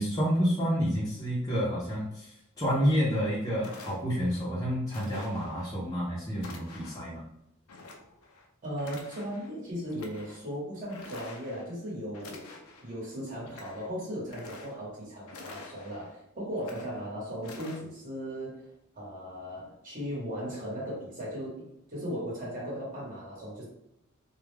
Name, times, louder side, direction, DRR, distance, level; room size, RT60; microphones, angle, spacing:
voice 1, 0.0-7.2, equal, 20° left, -7 dB, 0.6 m, -29 dB
sound 1, 3.1-3.2 3.6-4.4 4.9-5.7 6.4-7.1 7.7-8.5 8.8-9.5 9.9-10.4 10.9-11.7 12.1-12.9 13.3-13.9 14.2-15.0 15.3-16.1 16.5-17.1 17.4-17.8, left 3 dB, 70° left, 0.5 m, -48 dB
voice 2, 8.6-12.5 12.8-18.7 18.9-23.6, equal, 40° right, -6 dB, 1.0 m, -37 dB
2.3 x 2.1 x 3.2 m, 0.81 s
head